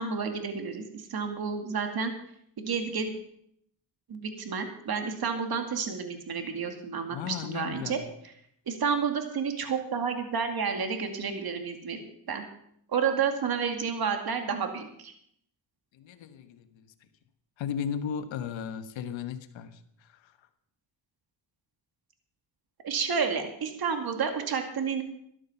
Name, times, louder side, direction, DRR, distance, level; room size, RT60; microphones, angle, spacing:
voice 1, 0.0-2.1 2.6-3.1 4.1-8.0 8.7-12.0 12.3-12.5 12.9-15.1 22.8-25.0, right 6 dB, 55° right, 5 dB, 2.3 m, -30 dB
voice 2, 7.1-8.0 15.9-16.8 17.6-20.3, left 8 dB, 85° left, 9 dB, 1.4 m, -36 dB
13.0 x 11.5 x 5.7 m, 0.70 s
cardioid pair, 85°, 44 cm